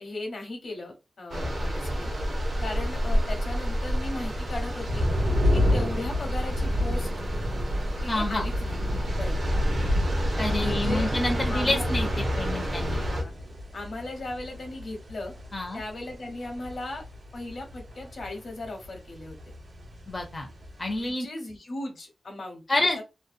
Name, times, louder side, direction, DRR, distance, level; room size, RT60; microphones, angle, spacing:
voice 1, 0.0-2.1 2.6-5.0 5.5-7.1 8.0-8.8 9.2-9.3 10.6-11.1 11.5-11.8 12.3-12.5 13.0-13.3 13.7-15.3 15.7-17.0 17.3-19.5 21.0-22.6, left 2 dB, 70° left, 3 dB, 0.8 m, -37 dB
sound 1, 1.3-13.2, equal, 65° right, 0.7 m, -29 dB
sound 2, 2.0-21.1, left 1 dB, 85° right, 1.0 m, -32 dB
voice 2, 8.1-8.5 10.4-13.1 15.5-15.8 20.1-20.5 20.8-21.3 22.7-23.0, left 2 dB, 25° left, 3 dB, 0.4 m, -28 dB
2.6 x 2.2 x 2.5 m, 0.27 s
wide cardioid pair, 135°, 0 cm